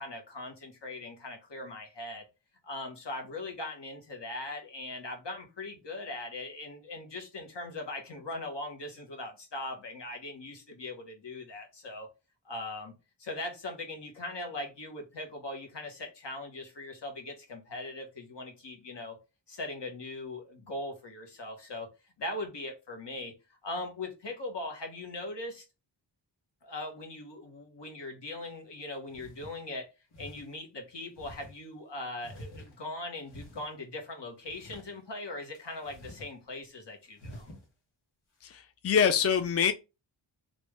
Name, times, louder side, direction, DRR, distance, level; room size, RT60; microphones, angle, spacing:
voice 1, 0.0-2.2 2.6-12.1 12.4-12.9 13.2-19.2 19.5-21.9 22.2-25.6 26.6-29.9 30.2-37.6, left 2 dB, 60° left, 1.2 m, -40 dB
sound 1, 28.5-28.6 29.1-29.6 30.1-30.5 31.2-31.6 32.2-32.9 33.3-33.7 34.5-34.9 35.5-36.3 36.6-36.7 37.2-37.6, equal, 85° left, 1.2 m, -48 dB
voice 2, 38.4-39.7, left 7 dB, 35° left, 0.4 m, -25 dB
3.2 x 2.6 x 3.2 m
wide cardioid pair, 65°, 47 cm